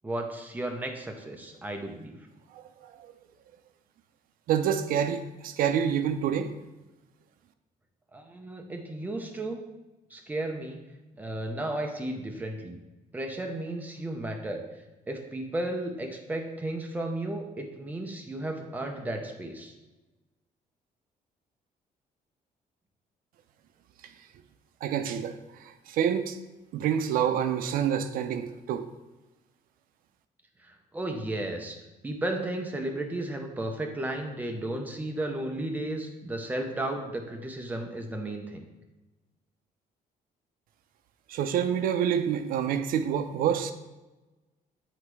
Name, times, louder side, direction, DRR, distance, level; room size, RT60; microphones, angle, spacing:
voice 1, 0.0-2.2 8.1-9.6 10.1-10.8 11.2-12.8 13.1-14.6 15.1-19.7 30.6-31.8 32.0-38.6, right 1 dB, 10° right, 0.7 m, -34 dB
voice 2, 4.5-6.5 24.8-26.4 26.7-28.9 41.3-43.7, right 8 dB, 75° right, 0.5 m, -27 dB
7.9 x 3.2 x 4.7 m
cardioid pair, 165°, 15 cm